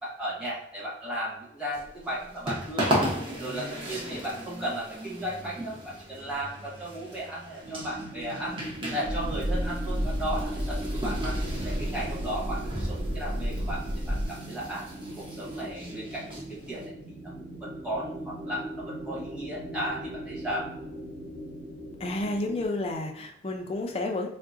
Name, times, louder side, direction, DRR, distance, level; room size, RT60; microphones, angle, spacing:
voice 1, 0.0-3.0 3.4-11.4 11.6-14.9 15.2-17.3 17.6-20.7, right 1 dB, 5° right, -7 dB, 1.0 m, -35 dB
sound 1, 1.7-16.9, equal, 30° right, 0.7 m, -36 dB
sound 2, 7.6-22.7, right 1 dB, 50° right, 1.4 m, -40 dB
sound 3, 9.0-14.3, equal, 75° right, 0.5 m, -31 dB
voice 2, 22.0-24.3, left 2 dB, 30° left, 3 dB, 0.4 m, -30 dB
3.6 x 2.0 x 2.5 m, 0.76 s
head